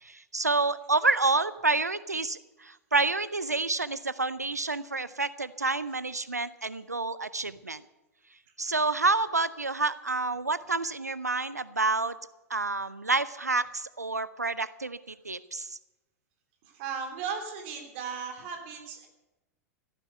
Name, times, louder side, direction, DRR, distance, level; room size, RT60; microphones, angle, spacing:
voice 1, 0.0-7.8 8.6-12.1 12.5-15.8, right 3 dB, 85° right, 16 dB, 0.5 m, -28 dB
voice 2, 16.6-19.1, right 6 dB, 45° right, 3 dB, 3.1 m, -36 dB
15.0 x 9.1 x 7.7 m, 0.99 s
figure-of-eight pair, 95°, 9 cm